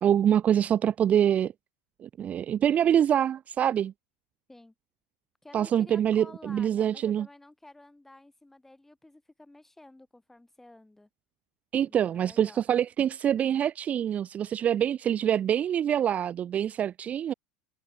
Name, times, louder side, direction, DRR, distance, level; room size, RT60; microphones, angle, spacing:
voice 1, 0.0-1.5 2.0-3.9 5.5-7.3 11.7-17.3, right 9 dB, 30° right, 0.4 m, -25 dB
voice 2, 5.4-11.1 11.9-12.6, left 2 dB, 5° left, 3.1 m, -52 dB
hypercardioid pair, 100°, 5 cm